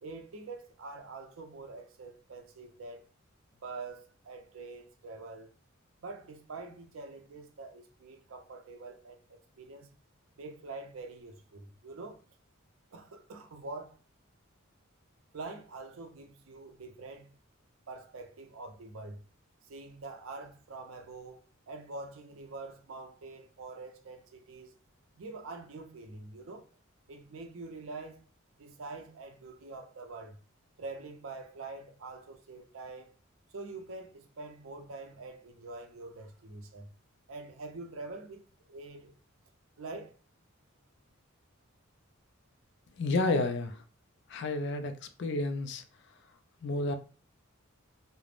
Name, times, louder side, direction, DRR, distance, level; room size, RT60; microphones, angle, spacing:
voice 1, 0.0-3.0 3.6-5.5 6.0-9.9 10.4-12.2 12.9-14.0 15.3-17.3 17.9-19.2 19.6-24.7 25.1-26.7 27.1-28.2 28.6-30.4 30.8-33.1 33.5-36.9 37.3-39.1 39.8-40.1, right 3 dB, 70° right, 0.5 m, -45 dB
voice 2, 43.0-43.8 44.3-44.9 45.2-45.8 46.6-47.0, left 2 dB, 55° left, 0.3 m, -30 dB
3.2 x 2.0 x 2.4 m
head